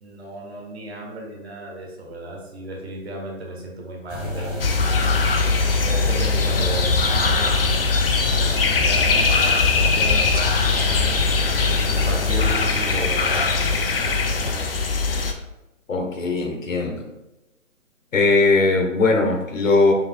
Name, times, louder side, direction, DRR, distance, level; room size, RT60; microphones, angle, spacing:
voice 1, 0.0-4.6 5.8-7.8 8.8-11.2 11.9-13.9, right 1 dB, 50° right, -1 dB, 1.2 m, -34 dB
sound 1, 4.1-14.5, left 1 dB, 20° left, 1.4 m, -30 dB
sound 2, 4.6-15.3, left 4 dB, 45° left, 0.5 m, -21 dB
voice 2, 15.9-17.0 18.1-19.9, left 3 dB, 70° left, 2 dB, 1.2 m, -19 dB
5.7 x 3.4 x 2.3 m, 0.98 s
hypercardioid pair, 155°, 40 cm